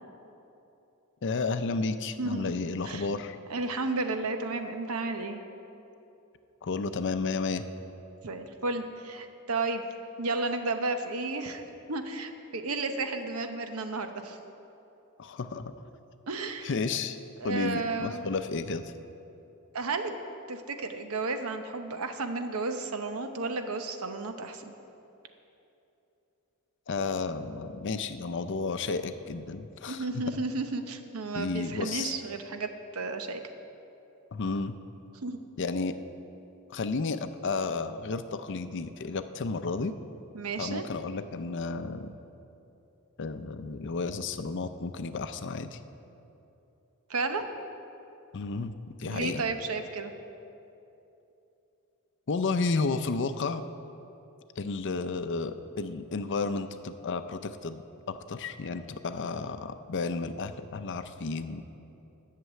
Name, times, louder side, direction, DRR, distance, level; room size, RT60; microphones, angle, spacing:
voice 1, 1.2-3.4 6.6-7.6 15.2-15.7 16.6-17.2 17.4-18.9 26.9-30.2 31.3-32.1 34.3-34.8 35.6-36.0 36.7-39.9 40.6-42.1 43.2-45.8 48.3-48.7 49.0-49.4 52.3-53.7 54.6-57.8 58.1-61.6, left 4 dB, 55° left, 10 dB, 0.5 m, -32 dB
voice 2, 2.2-2.6 2.8-3.1 3.5-5.4 8.2-9.8 10.2-11.6 11.9-14.4 16.3-16.7 17.4-18.3 19.7-20.1 20.5-24.7 29.9-32.7 32.9-33.4 35.2-35.4 40.3-40.8 47.1-47.5 49.0-50.1, right 3 dB, 75° right, 7 dB, 0.9 m, -32 dB
11.0 x 6.7 x 8.3 m, 2.9 s
head